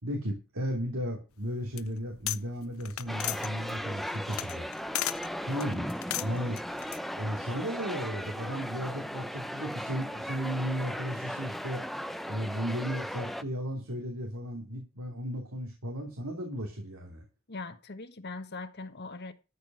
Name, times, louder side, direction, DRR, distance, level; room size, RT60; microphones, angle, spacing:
voice 1, 0.0-4.7 5.4-5.9 6.2-6.6 7.1-11.8 12.3-17.2, equal, 90° right, 2 dB, 3.0 m, -35 dB
sound 1, 1.4-2.4 2.7-5.3 5.6-7.0, left 14 dB, 80° left, 0.6 m, -35 dB
sound 2, 3.1-13.4, equal, ahead, 0.6 m, -37 dB
voice 2, 17.5-19.3, left 3 dB, 50° left, 8 dB, 1.3 m, -41 dB
13.5 x 5.3 x 7.7 m, 0.30 s
head